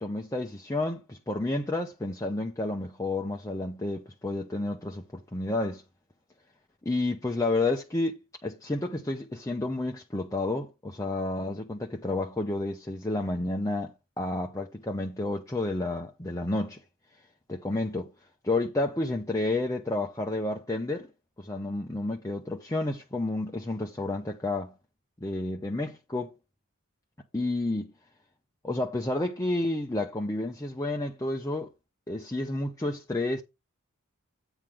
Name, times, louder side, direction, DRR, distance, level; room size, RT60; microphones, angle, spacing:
voice 1, 0.0-5.8 6.8-16.8 17.5-18.1 18.4-21.1 21.4-24.7 25.2-26.3 27.3-27.9 28.6-31.7 32.1-33.4, left 2 dB, 15° left, 0.8 m, -30 dB
9.0 x 3.6 x 6.2 m
head